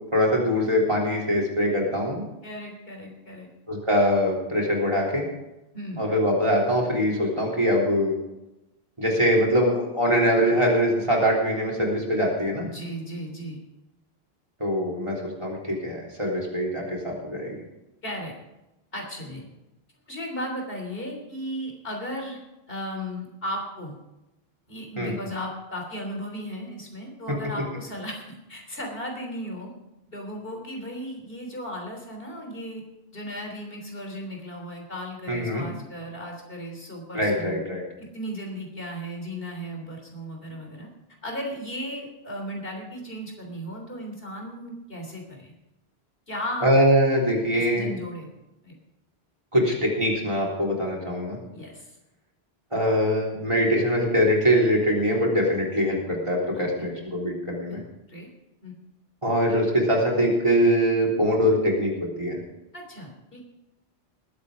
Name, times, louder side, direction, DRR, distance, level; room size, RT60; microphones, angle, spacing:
voice 1, 0.1-2.2 3.7-5.2 6.0-8.1 9.0-12.7 14.6-17.6 25.0-25.2 35.3-35.6 37.1-37.8 46.6-47.9 49.5-51.4 52.7-57.8 59.2-62.4, equal, 30° right, -3 dB, 3.8 m, -23 dB
voice 2, 2.4-3.5 5.7-6.1 12.7-13.6 18.0-18.3 18.9-19.4 20.1-22.4 22.7-23.9 24.7-28.2 28.5-29.7 30.1-32.8 33.1-37.6 38.0-40.9 41.2-45.5 46.3-46.8 47.5-48.3 48.6-48.8 51.5-51.9 56.5-56.9 57.7-57.8 58.1-58.3 58.6-58.7 62.7-63.4, equal, 65° left, 1 dB, 3.7 m, -35 dB
20.0 x 8.3 x 5.0 m, 0.96 s
omnidirectional pair, 1.1 m